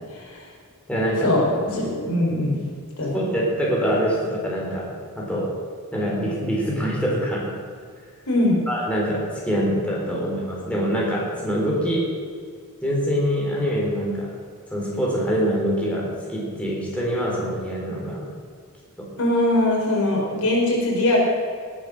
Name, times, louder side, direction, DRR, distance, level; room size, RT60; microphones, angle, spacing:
voice 1, 0.1-0.4 1.2-2.6 3.0-3.2 8.3-8.6 10.1-10.3 19.2-21.2, left 1 dB, 70° left, -3 dB, 4.6 m, -21 dB
voice 2, 0.9-1.3 1.7-1.8 3.1-4.8 5.2-5.5 5.9-7.5 8.7-12.0 12.8-14.3 14.7-18.3 19.0-19.1, equal, 5° left, -5 dB, 3.8 m, -24 dB
18.5 x 8.7 x 6.5 m, 2.1 s
head